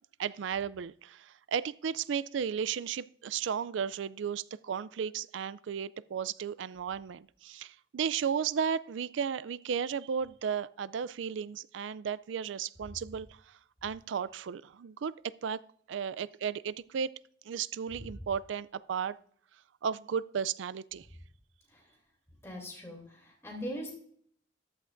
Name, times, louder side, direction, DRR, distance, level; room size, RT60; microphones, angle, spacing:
voice 1, 0.2-13.4 13.8-15.1 15.4-15.6 15.9-17.2 17.5-19.2 19.8-21.1, right 7 dB, 80° right, 0.4 m, -34 dB
voice 2, 22.4-23.9, equal, 15° left, 2.9 m, -41 dB
14.0 x 10.5 x 2.6 m
head